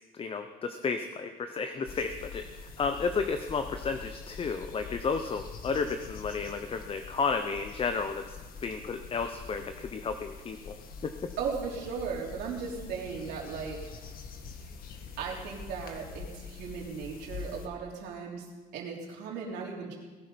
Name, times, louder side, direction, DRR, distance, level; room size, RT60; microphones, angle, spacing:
voice 1, 0.1-10.7 11.0-11.1, left 5 dB, 35° left, 7 dB, 0.9 m, -32 dB
sound 1, 1.9-17.7, left 5 dB, 60° left, 1.9 m, -45 dB
voice 2, 11.4-13.8 15.2-18.5 18.7-20.0, right 6 dB, 85° right, -2 dB, 3.5 m, -37 dB
19.5 x 11.5 x 5.3 m, 1.3 s
cardioid pair, 110°, 17 cm